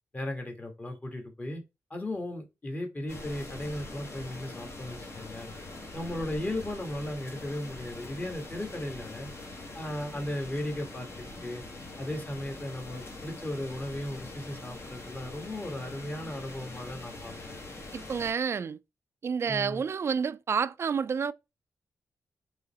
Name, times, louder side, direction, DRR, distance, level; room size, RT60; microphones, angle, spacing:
voice 1, 0.1-1.6 1.9-5.5 5.9-9.3 9.7-11.6 12.0-17.3 19.5-19.8, left 1 dB, 30° left, 1.5 m, -36 dB
sound 1, 3.1-18.3, left 2 dB, 45° left, 1.3 m, -43 dB
voice 2, 17.9-18.8 19.2-21.3, right 6 dB, 45° right, 0.3 m, -29 dB
3.7 x 3.1 x 4.0 m
cardioid pair, 60°, 6 cm